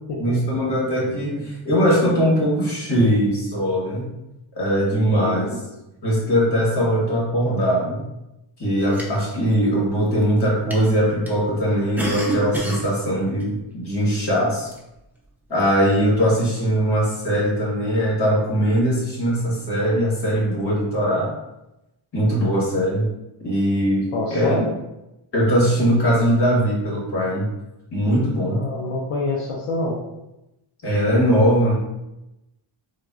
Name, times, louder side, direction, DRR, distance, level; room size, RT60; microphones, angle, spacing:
voice 1, 0.2-4.1 4.5-5.6 6.0-8.0 8.6-14.7 15.5-21.3 22.1-23.1 23.4-24.6 25.3-27.5 27.9-28.9 30.8-31.7, equal, 55° left, -4 dB, 1.5 m, -20 dB
voice 2, 5.1-5.5 24.1-24.7 28.4-30.0, left 2 dB, 90° left, -3 dB, 0.7 m, -26 dB
sound 1, 8.8-9.5 10.1-10.4 10.7-10.8 11.3-11.4 11.8-12.9 13.4-13.5 14.7-14.8 15.5-15.7, right 1 dB, 5° right, 0.6 m, -29 dB
3.9 x 2.4 x 2.4 m, 0.91 s
cardioid pair, 80°, 50 cm